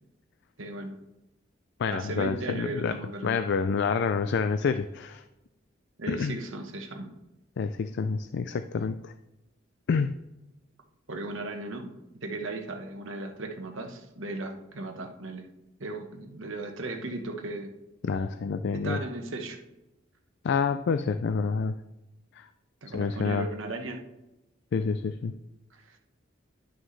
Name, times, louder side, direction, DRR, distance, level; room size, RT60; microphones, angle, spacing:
voice 1, 0.6-1.0 1.9-3.4 6.0-7.1 11.1-11.9 12.2-15.5 15.8-17.7 18.7-19.6 22.8-24.0 25.9-26.0, right 2 dB, 75° right, 4 dB, 1.2 m, -36 dB
voice 2, 1.8-2.9 3.2-5.2 6.1-6.4 7.6-9.1 9.9-10.2 18.0-19.0 20.4-21.8 22.3-22.5 22.9-23.5 24.7-25.3, left 5 dB, 60° left, 10 dB, 0.4 m, -28 dB
11.0 x 6.2 x 3.2 m, 0.97 s
head